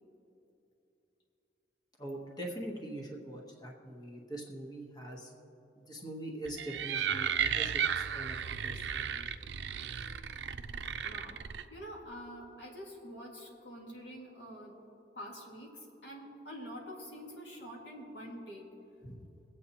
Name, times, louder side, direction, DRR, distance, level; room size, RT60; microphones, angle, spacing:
voice 1, 2.0-5.3 5.8-9.2 19.0-19.2, right 1 dB, 25° left, -1 dB, 1.2 m, -43 dB
sound 1, 6.5-11.6, right 8 dB, 90° right, 0.5 m, -34 dB
voice 2, 11.0-11.4 11.7-14.8 15.2-18.7, equal, 90° left, -1 dB, 2.0 m, -46 dB
22.5 x 8.2 x 2.9 m, 2.8 s
head